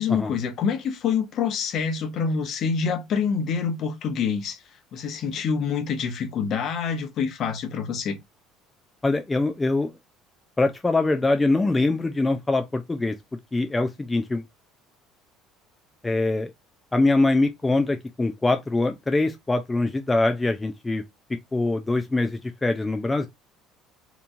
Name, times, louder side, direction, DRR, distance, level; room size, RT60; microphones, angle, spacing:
voice 1, 0.0-4.6 4.9-8.2, left 6 dB, 50° left, 0.8 m, -26 dB
voice 2, 9.0-9.9 10.6-13.2 13.5-14.4 16.0-16.5 16.9-21.0 21.5-23.3, left 2 dB, 15° left, 0.3 m, -23 dB
2.9 x 2.3 x 2.5 m
cardioid pair, 125°, 0 cm